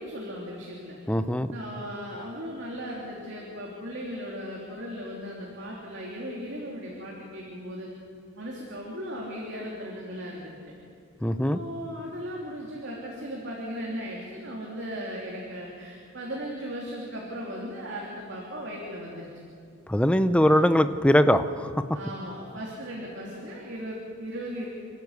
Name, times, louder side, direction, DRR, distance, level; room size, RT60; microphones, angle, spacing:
voice 1, 0.0-1.0 1.5-7.9 8.4-10.7 11.5-19.3 20.4-20.6 21.9-24.7, equal, 55° right, -3 dB, 3.1 m, -37 dB
voice 2, 1.1-1.5 11.2-11.6 19.9-21.7, equal, 5° left, 11 dB, 0.6 m, -21 dB
28.0 x 12.5 x 8.1 m, 2.4 s
head